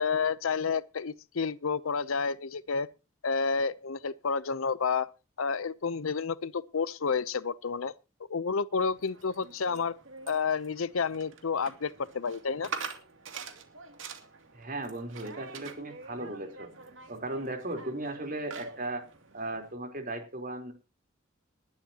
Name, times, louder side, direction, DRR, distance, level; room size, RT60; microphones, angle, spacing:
voice 1, 0.0-2.9 3.2-5.1 5.4-7.9 8.3-10.0 10.3-12.7, left 5 dB, 90° left, 0.7 m, -30 dB
sound 1, 8.8-19.7, right 5 dB, 70° right, 2.6 m, -46 dB
voice 2, 14.5-16.7 17.1-19.1 19.3-20.7, right 2 dB, 45° right, 3.7 m, -36 dB
20.0 x 11.5 x 2.9 m
head